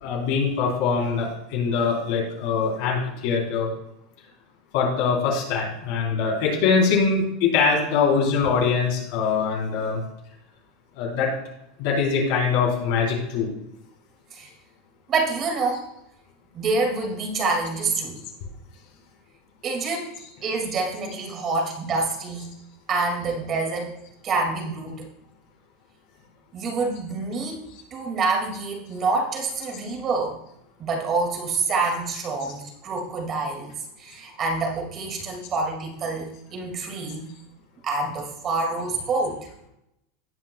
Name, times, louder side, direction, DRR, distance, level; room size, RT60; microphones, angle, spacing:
voice 1, 0.0-3.7 4.7-10.0 11.0-11.3 11.8-13.5, left 5 dB, 65° left, -2 dB, 3.5 m, -23 dB
voice 2, 15.1-15.8 16.5-18.2 19.6-20.1 20.4-22.5 22.9-24.0 24.2-25.1 26.5-27.6 27.9-30.4 30.8-33.7 34.0-37.3 37.8-39.4, right 3 dB, 35° right, 2 dB, 2.0 m, -27 dB
17.5 x 5.9 x 2.2 m, 0.81 s
supercardioid pair, 120°, 0 cm